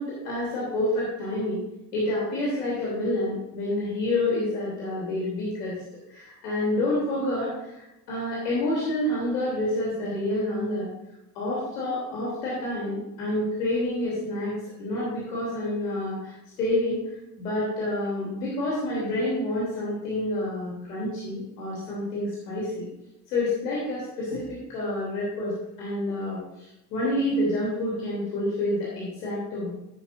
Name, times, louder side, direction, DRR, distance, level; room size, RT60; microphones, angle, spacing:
voice 1, 0.0-1.6 1.9-5.7 6.1-10.9 11.3-17.0 17.4-22.9 23.3-25.5 25.8-29.7, left 1 dB, 80° left, -6 dB, 3.2 m, -28 dB
12.0 x 10.0 x 2.6 m, 0.90 s
hypercardioid pair, 55°, 47 cm